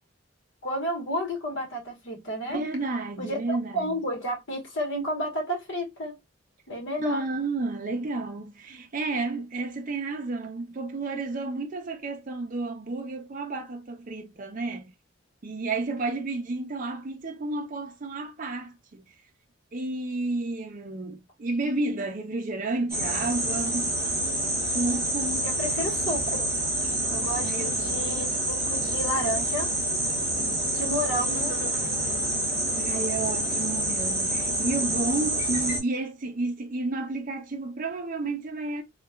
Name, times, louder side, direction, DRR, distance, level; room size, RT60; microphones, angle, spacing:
voice 1, 0.6-2.6 3.2-6.2 6.7-7.3 25.4-26.5 27.1-29.7 30.7-31.6, equal, 65° left, 1.2 m, -31 dB
voice 2, 2.5-3.9 7.0-14.9 15.4-19.0 19.7-23.9 24.7-25.5 27.3-28.1 32.6-38.8, right 2 dB, 40° right, 0.5 m, -31 dB
sound 1, 22.9-35.8, right 1 dB, 15° right, 1.1 m, -27 dB
3.0 x 2.3 x 2.2 m
head